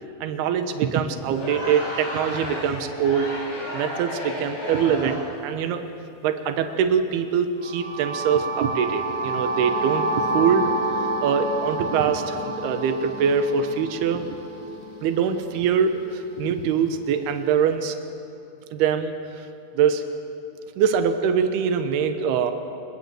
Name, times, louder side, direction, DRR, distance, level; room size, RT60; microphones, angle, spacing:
voice 1, 0.2-3.3 3.7-5.8 6.2-10.7 11.0-14.3 15.0-18.0 18.7-19.5 19.7-20.0 20.8-22.5, right 7 dB, 85° right, 8 dB, 3.2 m, -23 dB
Crowd, 1.2-5.4, left 1 dB, 75° left, 9.8 m, -33 dB
sound 1, 7.6-15.5, right 2 dB, 35° left, 2.9 m, -29 dB
27.5 x 21.5 x 7.8 m, 2.8 s
omnidirectional pair, 4.5 m